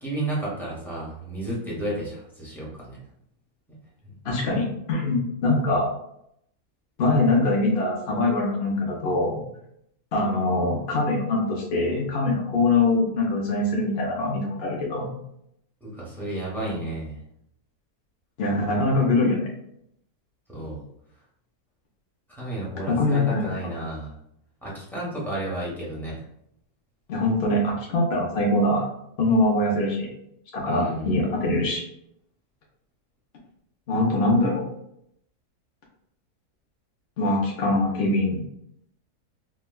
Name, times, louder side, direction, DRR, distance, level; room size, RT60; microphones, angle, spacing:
voice 1, 0.0-3.0 4.0-4.1 15.8-17.2 20.5-20.8 22.3-24.1 24.6-26.2 30.6-31.2, right 1 dB, ahead, -6 dB, 0.8 m, -32 dB
voice 2, 4.2-5.9 7.0-9.4 10.1-15.2 18.4-19.5 22.9-23.4 27.1-28.9 29.2-30.1 30.5-31.8 33.9-34.6 37.2-38.4, left 2 dB, 55° left, -2 dB, 0.7 m, -23 dB
4.5 x 2.2 x 2.2 m, 0.74 s
omnidirectional pair, 1.6 m